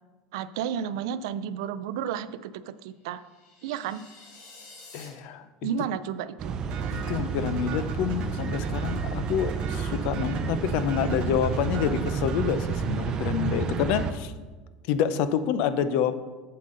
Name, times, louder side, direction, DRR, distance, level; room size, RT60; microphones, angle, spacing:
voice 1, 0.3-3.2 3.6-4.0 5.6-6.5, right 8 dB, 90° right, 14 dB, 0.4 m, -32 dB
sound 1, 3.1-5.1, left 3 dB, 75° left, 2.0 m, -50 dB
voice 2, 4.9-5.5 6.9-14.3 14.9-16.2, left 8 dB, 60° left, 13 dB, 0.5 m, -27 dB
sound 2, 6.4-14.1, right 5 dB, 30° right, 0.5 m, -30 dB
sound 3, 6.7-13.4, right 6 dB, 45° right, 1.1 m, -42 dB
7.6 x 7.6 x 3.8 m, 1.3 s
cardioid pair, 160°, 3 cm